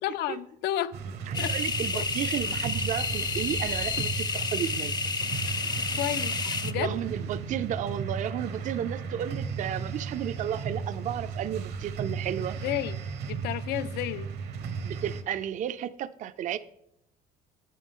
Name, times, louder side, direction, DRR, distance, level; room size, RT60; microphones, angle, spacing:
voice 1, 0.0-0.9 1.4-1.5 1.9-2.0 6.0-6.3 6.6-7.0 12.6-13.0 13.3-14.3, left 13 dB, 80° left, 0.4 m, -31 dB
sound 1, 0.9-15.2, right 5 dB, 75° right, 1.1 m, -35 dB
sound 2, 1.3-6.7, left 3 dB, 25° left, 0.5 m, -31 dB
voice 2, 1.3-5.0 6.8-12.6 14.8-16.6, right 10 dB, 50° right, 0.4 m, -33 dB
sound 3, 3.0-4.9, left 21 dB, 55° left, 0.8 m, -41 dB
8.5 x 8.3 x 3.7 m
cardioid pair, 110°, 17 cm